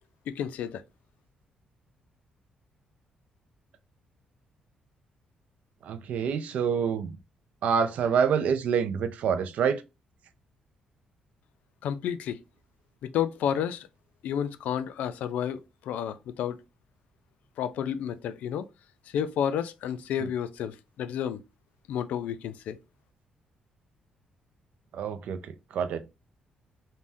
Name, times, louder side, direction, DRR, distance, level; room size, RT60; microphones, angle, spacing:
voice 1, 0.3-0.8 11.8-12.4 13.0-13.9 14.2-15.6 15.9-16.6 17.6-18.7 19.1-21.4 21.9-22.8, left 9 dB, 85° left, 0.3 m, -31 dB
voice 2, 5.8-7.2 7.6-9.8 24.9-26.0, right 7 dB, 65° right, 0.4 m, -27 dB
3.4 x 2.1 x 2.6 m
cardioid pair, 165°, 3 cm